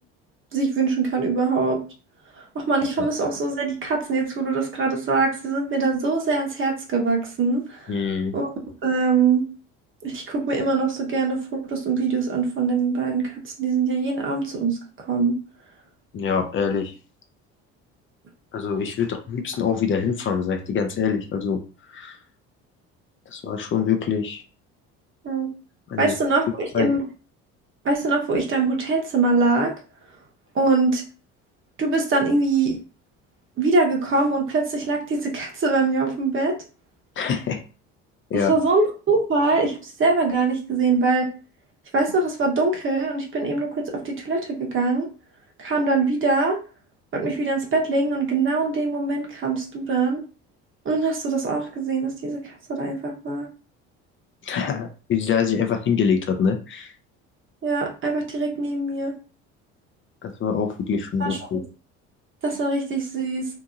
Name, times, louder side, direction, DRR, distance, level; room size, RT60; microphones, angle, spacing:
voice 1, 0.5-1.8 2.5-8.0 8.3-8.5 8.8-9.5 10.0-14.8 15.1-15.3 25.2-25.5 26.0-27.0 27.8-29.7 30.5-31.0 31.8-32.8 33.6-36.5 38.5-41.3 41.9-45.1 45.6-46.6 47.1-50.2 50.8-53.5 57.6-59.1 61.2-61.6 62.4-63.5, right 3 dB, 40° right, 1 dB, 1.0 m, -23 dB
voice 2, 7.9-8.3 16.1-16.9 18.5-21.6 21.9-22.2 23.3-24.4 25.9-26.1 26.7-26.9 37.2-37.6 38.3-38.5 54.4-56.9 60.2-61.6, left 6 dB, 40° left, 5 dB, 0.5 m, -24 dB
2.8 x 2.6 x 2.4 m, 0.36 s
supercardioid pair, 80°, 30 cm